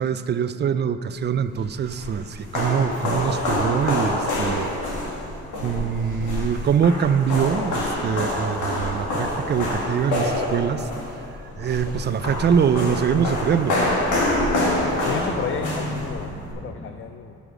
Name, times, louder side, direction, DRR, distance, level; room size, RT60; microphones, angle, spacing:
voice 1, 0.0-4.7 5.0-5.1 5.6-10.9 11.6-13.9, right 7 dB, 35° right, 12 dB, 0.4 m, -23 dB
sound 1, 1.5-16.5, left 1 dB, 80° left, 1.9 m, -26 dB
sound 2, 1.5-16.9, right 1 dB, 15° left, 1.8 m, -42 dB
voice 2, 15.0-17.4, left 8 dB, 45° left, 7 dB, 0.4 m, -32 dB
6.9 x 6.5 x 6.1 m, 2.8 s
cardioid pair, 90°, 30 cm